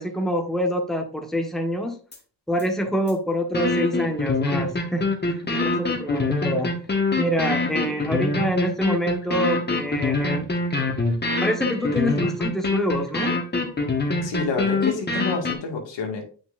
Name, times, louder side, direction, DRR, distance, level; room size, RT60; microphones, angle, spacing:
voice 1, 0.0-1.9 2.5-6.7 7.2-10.5 11.4-13.4, equal, ahead, 3 dB, 1.3 m, -26 dB
sound 1, 2.1-2.2 2.6-2.7 3.1-3.2 3.5-15.6, left 3 dB, 25° left, 1.5 m, -24 dB
voice 2, 14.2-16.2, left 4 dB, 90° left, 2 dB, 2.0 m, -28 dB
8.0 x 6.2 x 2.5 m, 0.40 s
cardioid pair, 105°, 42 cm